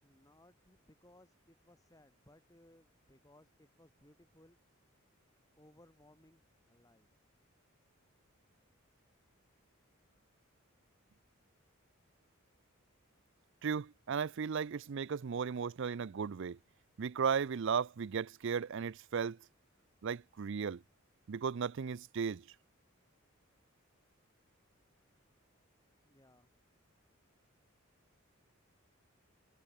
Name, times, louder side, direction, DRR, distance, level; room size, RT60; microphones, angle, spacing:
voice 1, 0.0-4.6 5.5-7.1 26.0-26.5, left 1 dB, 15° left, 5.3 m, -64 dB
voice 2, 13.6-16.6 17.0-19.4 20.0-20.8 21.3-22.4, right 6 dB, 60° right, 0.4 m, -35 dB
head